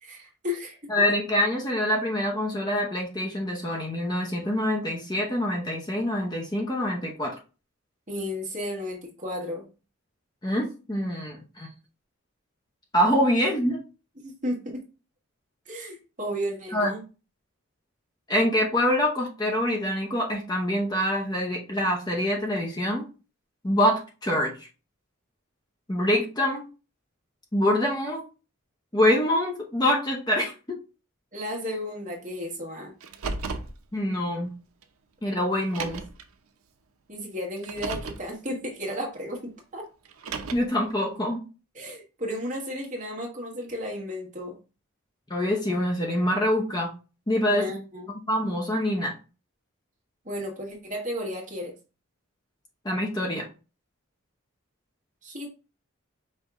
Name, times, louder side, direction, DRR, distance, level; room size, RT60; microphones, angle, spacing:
voice 1, 0.0-0.8 8.1-9.7 14.2-14.8 15.6-17.0 31.3-32.9 37.1-39.4 39.7-39.8 41.7-44.5 47.5-48.1 50.2-51.7 55.2-55.5, equal, 35° right, -1 dB, 1.5 m, -33 dB
voice 2, 0.9-7.3 10.4-11.7 12.9-13.8 16.7-17.0 18.3-23.1 23.6-24.7 25.9-26.6 27.5-28.2 28.9-30.8 33.9-34.5 35.2-36.0 40.5-41.4 45.3-46.9 47.3-47.7 48.3-49.1 52.8-53.4, left 1 dB, 20° left, 0 dB, 0.7 m, -25 dB
Car, 33.0-33.7 34.8-34.9 35.6-36.2 37.6-38.2 40.1-40.8, right 4 dB, 85° right, 0.6 m, -34 dB
5.5 x 2.7 x 3.5 m, 0.33 s
head